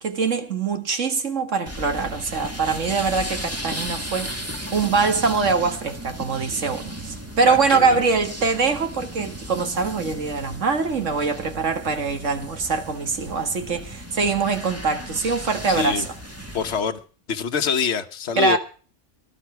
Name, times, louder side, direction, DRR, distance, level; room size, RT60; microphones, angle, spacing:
voice 1, 0.0-16.0 18.4-18.6, right 4 dB, 85° right, 2.1 m, -23 dB
sound 1, 1.7-16.8, right 1 dB, 10° right, 2.3 m, -35 dB
voice 2, 7.5-8.1 15.7-16.1 16.5-17.0 17.3-18.6, left 6 dB, 65° left, 1.3 m, -25 dB
19.0 x 11.5 x 4.5 m
omnidirectional pair, 1.2 m